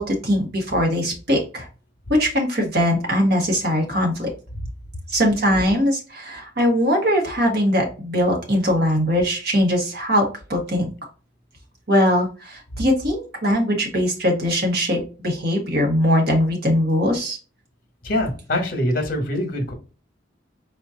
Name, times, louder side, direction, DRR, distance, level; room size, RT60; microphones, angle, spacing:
voice 1, 0.0-1.7 2.1-4.3 5.1-10.2 10.5-10.9 11.9-17.4, equal, 55° right, 1 dB, 1.5 m, -21 dB
voice 2, 18.0-19.7, left 1 dB, 50° left, 5 dB, 1.2 m, -24 dB
4.1 x 2.9 x 3.7 m, 0.34 s
head